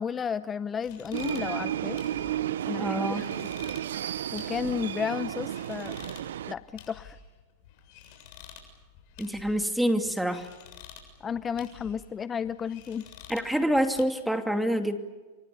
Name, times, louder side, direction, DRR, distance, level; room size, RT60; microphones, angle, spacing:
voice 1, 0.0-2.0 2.6-3.5 4.3-6.0 6.5-7.2 11.2-13.1, left 7 dB, 20° left, 13 dB, 0.7 m, -33 dB
sound 1, 0.8-14.1, left 8 dB, 55° left, 7.3 m, -50 dB
sound 2, 1.1-6.5, right 11 dB, 85° right, 0.8 m, -32 dB
voice 2, 2.8-3.2 9.2-10.5 13.3-15.0, equal, 5° right, 6 dB, 2.6 m, -26 dB
29.0 x 24.0 x 7.0 m, 1.3 s
hypercardioid pair, 120°, 0 cm